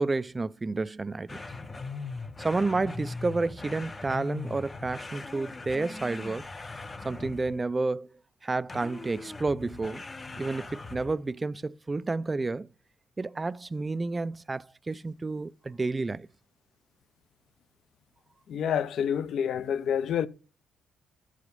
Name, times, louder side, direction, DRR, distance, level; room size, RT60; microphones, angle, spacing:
voice 1, 0.0-1.4 2.4-6.5 7.0-8.1 8.4-10.0 10.4-12.7 13.2-16.3, right 3 dB, 25° right, 0.4 m, -30 dB
sound 1, 1.3-7.7 8.7-11.3, left 3 dB, 25° left, 0.7 m, -40 dB
voice 2, 18.5-20.3, left 8 dB, 65° left, 0.6 m, -28 dB
13.5 x 4.9 x 5.3 m
cardioid pair, 90°, 0 cm